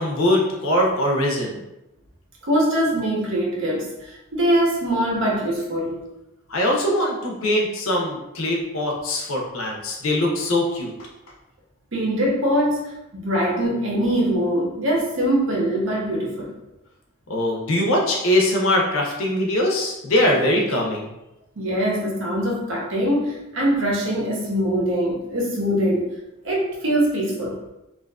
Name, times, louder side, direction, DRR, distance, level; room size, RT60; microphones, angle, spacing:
voice 1, 0.0-1.6 6.5-10.9 17.3-21.1, left 1 dB, 70° left, -1 dB, 0.6 m, -22 dB
voice 2, 2.4-6.0 11.9-16.5 21.6-26.1 26.4-27.6, equal, 60° right, -2 dB, 0.7 m, -23 dB
2.6 x 2.4 x 2.3 m, 0.93 s
head